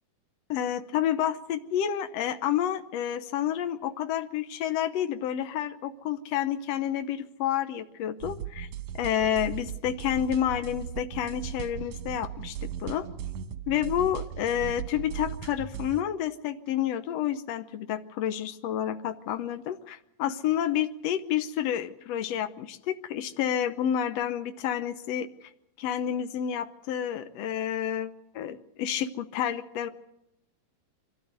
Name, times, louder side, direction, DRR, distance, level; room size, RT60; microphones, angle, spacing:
voice 1, 0.5-8.7 9.0-13.1 13.7-25.5 25.8-29.9, left 10 dB, 85° left, 9 dB, 1.4 m, -29 dB
sound 1, 8.2-16.0, right 9 dB, 65° right, 1.8 m, -37 dB
24.5 x 14.5 x 8.2 m, 0.84 s
omnidirectional pair, 4.3 m